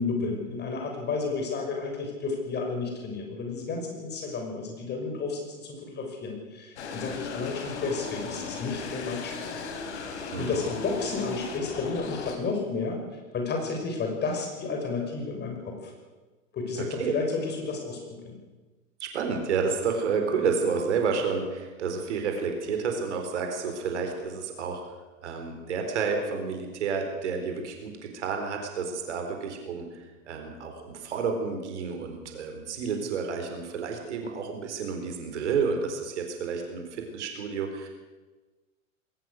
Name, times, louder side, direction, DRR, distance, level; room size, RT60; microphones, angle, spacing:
voice 1, 0.0-9.6 10.1-13.0 13.3-15.9 16.5-18.4, left 4 dB, 25° left, 2 dB, 5.8 m, -32 dB
sound 1, 6.8-12.4, left 4 dB, 55° left, 3.7 m, -37 dB
voice 2, 10.3-10.6 16.8-17.1 19.0-24.8 25.2-37.9, right 5 dB, 60° right, 4 dB, 4.2 m, -30 dB
21.5 x 18.5 x 6.6 m, 1.2 s
figure-of-eight pair, 95°, 39 cm